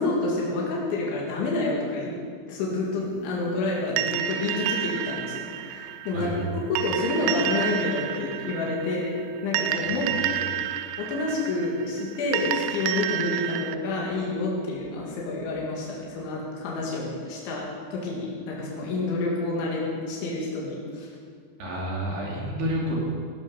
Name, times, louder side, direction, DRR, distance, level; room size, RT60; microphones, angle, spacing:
voice 1, 0.0-2.1 2.5-6.3 6.6-9.2 9.4-10.1 10.4-10.6 11.0-21.1, left 2 dB, 85° left, -3 dB, 4.4 m, -28 dB
sound 1, 4.0-13.8, right 11 dB, 90° right, 3.0 m, -30 dB
voice 2, 6.1-6.4 9.8-10.3 21.6-23.0, equal, 65° right, -3 dB, 4.6 m, -30 dB
16.5 x 12.0 x 5.7 m, 2.1 s
omnidirectional pair, 5.2 m